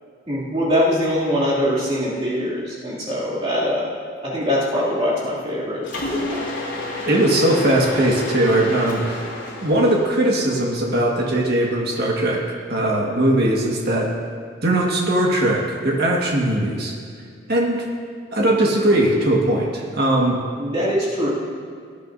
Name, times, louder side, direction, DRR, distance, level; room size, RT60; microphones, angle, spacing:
voice 1, 0.3-3.9 4.2-5.8 20.6-21.3, equal, 30° right, -8 dB, 2.6 m, -22 dB
Mechanisms, 5.8-11.0, left 2 dB, 65° left, 2.8 m, -30 dB
voice 2, 7.1-9.2 9.6-12.4 12.7-14.1 14.6-16.9 17.5-17.8 18.3-20.4, right 1 dB, 50° right, -2 dB, 1.6 m, -19 dB
19.0 x 10.5 x 2.7 m, 2.2 s
head